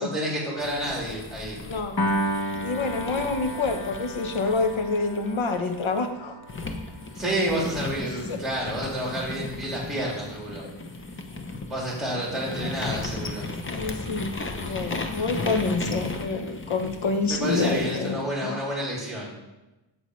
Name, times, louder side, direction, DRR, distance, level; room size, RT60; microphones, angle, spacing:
voice 1, 0.0-1.6 7.1-10.6 11.7-13.5 17.3-19.3, right 1 dB, ahead, -5 dB, 2.9 m, -29 dB
sound 1, 0.6-6.0 6.5-18.1, left 3 dB, 25° left, 0.6 m, -36 dB
voice 2, 1.7-2.0 2.6-6.3 8.3-8.4 12.5-12.8 13.7-14.3 14.6-18.6, left 3 dB, 70° left, 6 dB, 1.0 m, -27 dB
Piano, 2.0-8.4, equal, 45° left, 1.0 m, -33 dB
8.3 x 7.4 x 3.1 m, 1.0 s
wide cardioid pair, 145°, 49 cm